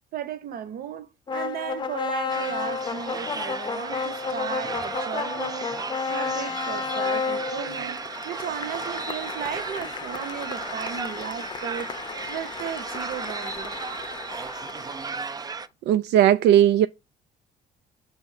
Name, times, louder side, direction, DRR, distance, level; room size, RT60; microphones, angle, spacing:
voice 1, 0.1-5.8 6.1-8.0 8.2-12.0 12.3-13.7, right 9 dB, 60° right, 1.0 m, -35 dB
sound 1, 1.3-15.4, left 5 dB, 25° left, 0.6 m, -32 dB
sound 2, 2.3-15.7, right 5 dB, 20° right, 0.4 m, -35 dB
voice 2, 15.9-16.9, right 11 dB, 75° right, 0.4 m, -17 dB
6.0 x 3.2 x 5.6 m
cardioid pair, 110°, 17 cm